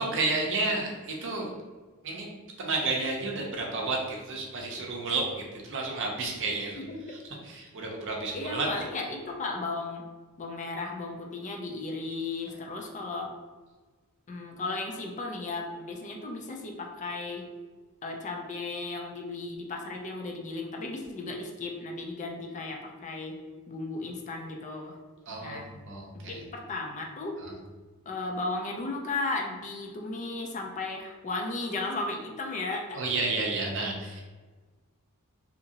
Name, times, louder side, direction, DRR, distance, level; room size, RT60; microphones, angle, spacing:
voice 1, 0.0-1.5 2.0-2.3 2.6-8.7 12.5-12.6 25.3-26.4 27.4-27.5 32.9-34.2, right 3 dB, 60° right, 0 dB, 0.6 m, -31 dB
voice 2, 8.3-10.0 10.4-13.3 14.3-17.5 18.0-23.4 23.7-25.0 25.4-25.7 26.1-27.4 28.1-33.0, left 3 dB, 35° left, 1 dB, 0.4 m, -35 dB
2.8 x 2.6 x 2.7 m, 1.3 s
head